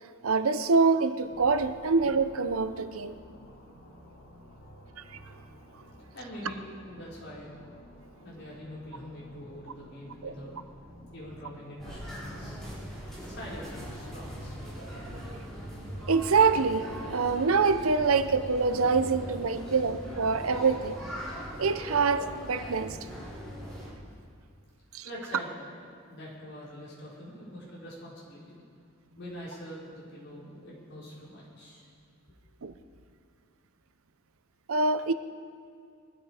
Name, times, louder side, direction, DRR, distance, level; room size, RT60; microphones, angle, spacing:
voice 1, 0.2-3.2 10.2-10.3 14.8-15.0 15.3-15.4 16.1-20.9 21.6-23.0 24.9-25.0 32.6-32.7 34.7-35.1, right 4 dB, 85° right, 0.7 m, -25 dB
sound 1, 1.2-17.4, equal, 75° left, 3.0 m, -51 dB
voice 2, 6.1-7.6 8.2-10.5 11.1-12.6 13.2-14.5 25.0-25.8 26.1-28.6 29.2-31.9 32.3-32.4, equal, 55° left, 5.4 m, -44 dB
sound 2, 11.8-23.9, equal, 5° left, 4.1 m, -41 dB
22.0 x 12.5 x 5.0 m
head